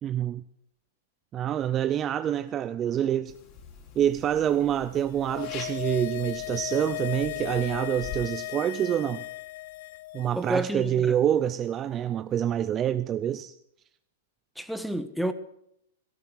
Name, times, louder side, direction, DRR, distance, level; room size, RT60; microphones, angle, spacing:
voice 1, 0.0-0.4 1.3-3.3 4.0-9.2 10.1-13.5, right 10 dB, 30° right, 0.6 m, -26 dB
sound 1, 3.3-8.3, left 5 dB, 45° left, 4.8 m, -45 dB
sound 2, 5.0-10.5 10.7-10.8, left 18 dB, 65° left, 0.5 m, -36 dB
voice 2, 10.3-11.2 14.6-15.3, right 1 dB, ahead, 1.4 m, -30 dB
17.5 x 14.0 x 4.8 m
hypercardioid pair, 120°, 0 cm